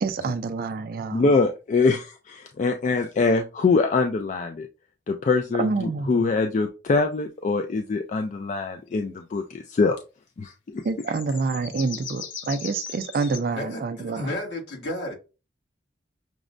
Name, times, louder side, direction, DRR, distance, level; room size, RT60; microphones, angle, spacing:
voice 1, 0.0-1.2 5.6-6.1 10.8-14.3, right 4 dB, 50° right, 0.4 m, -27 dB
voice 2, 1.1-4.7 5.1-10.0 10.4-10.8, left 3 dB, 40° left, 0.3 m, -24 dB
sound 1, 10.8-13.4, left 7 dB, 90° left, 0.7 m, -38 dB
voice 3, 13.5-15.1, left 1 dB, 70° left, 1.4 m, -32 dB
5.9 x 2.1 x 2.5 m
head